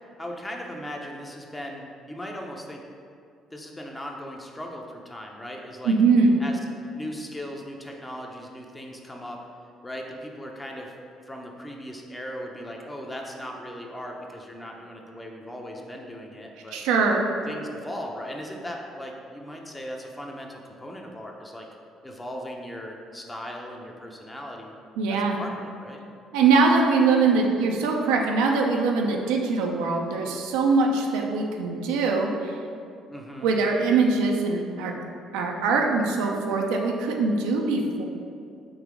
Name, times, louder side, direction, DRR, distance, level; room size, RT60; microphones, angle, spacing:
voice 1, 0.2-2.8 3.5-5.9 6.4-6.6 6.9-9.4 9.8-10.9 11.3-16.8 17.5-21.7 22.0-24.7 25.1-26.0 33.1-33.5, equal, 15° left, 1 dB, 0.7 m, -38 dB
voice 2, 5.8-6.4 16.7-17.3 25.0-25.4 26.3-32.5 33.4-34.9 35.3-38.0, right 4 dB, 80° right, 1 dB, 0.5 m, -22 dB
3.9 x 2.8 x 4.7 m, 2.4 s
supercardioid pair, 65°, 0 cm